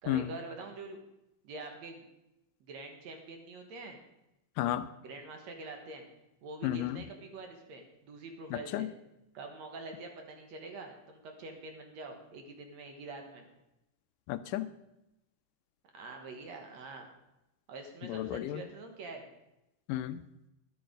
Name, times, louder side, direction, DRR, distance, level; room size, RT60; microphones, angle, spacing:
voice 1, 0.0-1.0 1.4-2.0 2.7-4.0 5.0-6.1 6.4-8.9 9.3-13.5 15.9-17.1 17.7-19.3, right 3 dB, 60° right, 4 dB, 2.4 m, -45 dB
voice 2, 4.6-4.9 6.6-7.0 8.7-8.9 14.3-14.7 18.1-18.6 19.9-20.2, left 13 dB, 80° left, 12 dB, 2.1 m, -32 dB
12.0 x 11.5 x 5.1 m, 0.91 s
omnidirectional pair, 3.9 m